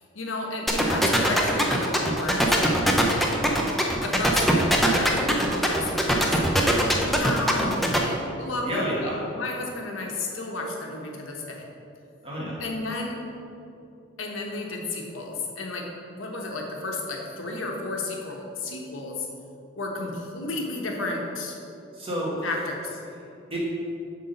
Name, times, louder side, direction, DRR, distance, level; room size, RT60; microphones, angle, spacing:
voice 1, 0.1-2.8 3.9-6.4 6.7-9.1 9.3-11.6 12.6-13.2 14.2-19.3 19.8-21.6 22.4-23.0, left 2 dB, 90° left, 0 dB, 1.2 m, -32 dB
sound 1, 0.7-8.0, equal, ahead, 0.6 m, -21 dB
voice 2, 8.6-9.2 12.2-12.6 21.9-22.5 23.5-23.6, equal, 30° right, -5 dB, 1.5 m, -29 dB
8.1 x 3.8 x 6.5 m, 2.7 s
head